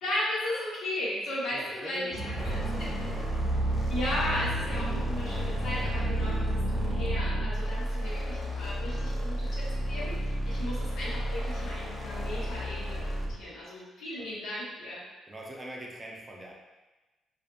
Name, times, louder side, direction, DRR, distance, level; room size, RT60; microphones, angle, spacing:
voice 1, 0.0-2.1 2.4-2.9 3.9-15.0, left 1 dB, 85° left, -8 dB, 1.0 m, -35 dB
voice 2, 1.5-3.3 10.5-10.8 14.2-14.3 15.3-16.5, right 1 dB, 20° right, -2 dB, 0.5 m, -44 dB
sound 1, 2.1-7.5, right 1 dB, 65° right, 0.7 m, -32 dB
sound 2, 2.4-13.4, equal, 20° left, 0.7 m, -32 dB
2.5 x 2.4 x 2.4 m, 1.1 s
cardioid pair, 90°, 0 cm